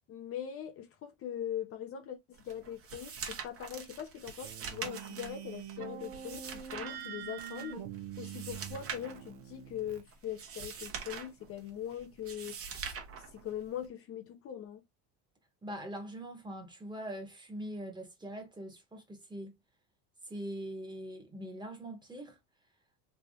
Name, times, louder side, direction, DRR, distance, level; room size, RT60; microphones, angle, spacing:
voice 1, 0.1-7.9 8.2-12.6 13.3-14.8, left 10 dB, 45° left, 0.6 m, -41 dB
sound 1, 2.3-13.9, right 6 dB, 45° right, 1.1 m, -44 dB
sound 2, 4.4-10.0, right 9 dB, 75° right, 0.7 m, -45 dB
voice 2, 15.6-19.5 20.2-22.4, right 1 dB, 15° right, 1.2 m, -42 dB
3.4 x 2.8 x 2.6 m
supercardioid pair, 110°, 33 cm